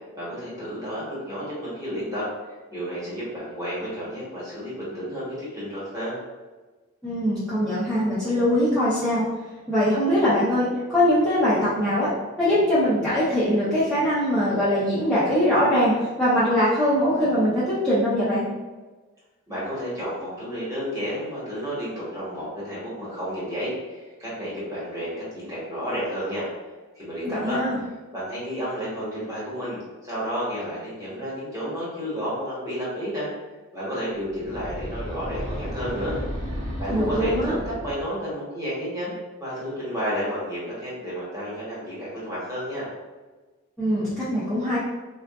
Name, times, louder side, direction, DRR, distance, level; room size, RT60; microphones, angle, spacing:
voice 1, 0.1-2.2 2.7-6.2 19.5-26.5 27.0-27.6 28.1-33.3 33.7-36.1 36.8-39.1 39.4-42.9, equal, 15° right, -9 dB, 1.1 m, -31 dB
voice 2, 7.0-9.2 9.7-12.1 12.4-18.4 27.2-27.8 36.9-37.6 43.8-44.8, equal, ahead, -13 dB, 0.6 m, -22 dB
sound 1, 34.2-38.2, equal, 30° right, 0.8 m, -33 dB
3.6 x 2.3 x 2.3 m, 1.3 s
head